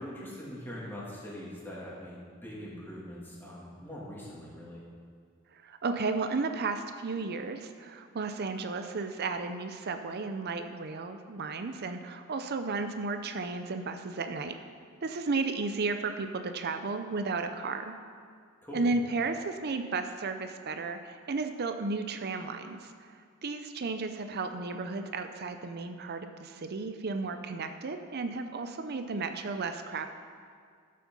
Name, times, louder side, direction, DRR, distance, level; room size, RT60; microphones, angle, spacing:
voice 1, 0.0-4.8 18.6-18.9, equal, 10° left, -6 dB, 2.5 m, -42 dB
voice 2, 5.6-14.5 15.0-17.9 18.7-22.9 23.4-30.1, right 3 dB, 50° right, 7 dB, 0.6 m, -33 dB
12.5 x 7.7 x 5.4 m, 2.1 s
head